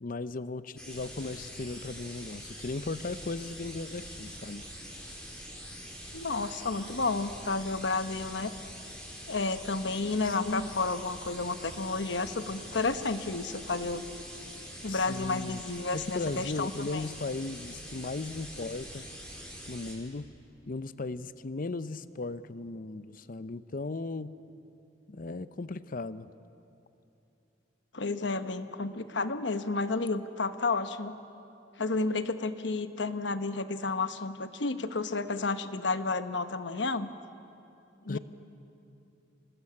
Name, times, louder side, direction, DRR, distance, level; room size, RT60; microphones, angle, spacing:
voice 1, 0.0-4.7 10.2-10.8 14.9-15.6 15.9-19.1 19.7-20.3 20.7-24.3 25.1-26.3 38.1-38.2, left 3 dB, 50° left, 14 dB, 0.6 m, -37 dB
sound 1, 0.8-19.9, equal, 5° left, 4.5 m, -44 dB
voice 2, 6.1-8.5 9.3-14.0 14.8-17.0 27.9-31.1 31.8-37.1 38.1-38.2, left 3 dB, 70° left, 10 dB, 1.0 m, -31 dB
26.0 x 19.0 x 8.6 m, 2.8 s
head